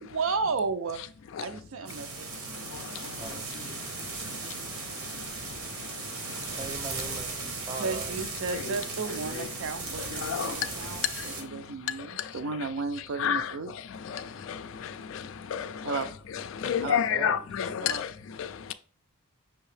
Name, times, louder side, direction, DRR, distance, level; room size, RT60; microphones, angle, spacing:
voice 1, 0.0-1.0 1.4-2.5 7.8-13.7 15.8-16.1 16.8-17.0 17.8-18.0, right 4 dB, 65° right, 0.5 m, -33 dB
sound 1, 1.9-11.4, right 3 dB, 80° right, 1.1 m, -37 dB
voice 2, 6.4-8.1 16.6-17.4, right 2 dB, 20° right, 0.6 m, -40 dB
voice 3, 10.1-10.5 13.2-13.5 14.1-14.2 14.5-14.6 15.1-15.2 15.5-16.1 16.3-18.1 18.4-18.5, left 8 dB, 60° left, 0.3 m, -29 dB
5.7 x 2.7 x 3.2 m
head